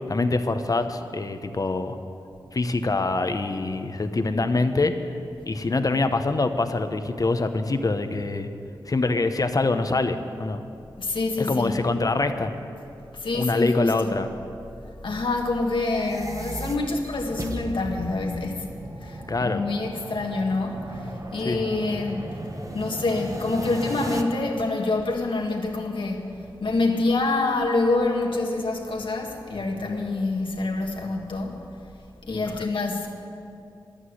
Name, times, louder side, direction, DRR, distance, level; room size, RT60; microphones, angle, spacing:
voice 1, 0.1-2.0 2.5-4.9 5.5-8.5 8.9-10.6 11.4-12.6 13.3-14.3 19.3-19.6 21.4-21.6, left 3 dB, 45° left, 8 dB, 0.9 m, -24 dB
voice 2, 11.0-11.8 13.1-14.2 15.0-18.7 19.0-22.3 22.7-26.3 26.6-31.6 32.2-33.1, left 3 dB, 75° left, 1 dB, 1.8 m, -26 dB
sound 1, 15.7-24.2, right 2 dB, 40° right, 1.1 m, -36 dB
11.0 x 8.8 x 9.7 m, 2.6 s
cardioid pair, 50°, 9 cm